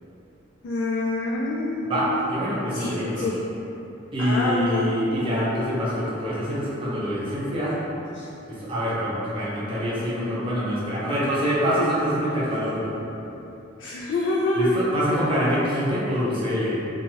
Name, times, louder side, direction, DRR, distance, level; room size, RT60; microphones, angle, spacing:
voice 1, 0.6-2.2 2.7-3.4 4.2-4.9 8.1-8.3 13.8-14.9, left 2 dB, 75° left, -5 dB, 0.3 m, -26 dB
voice 2, 1.9-3.3 4.1-7.7 8.5-12.9 14.5-16.7, equal, 25° right, -9 dB, 0.7 m, -25 dB
2.9 x 2.3 x 2.7 m, 3.0 s
head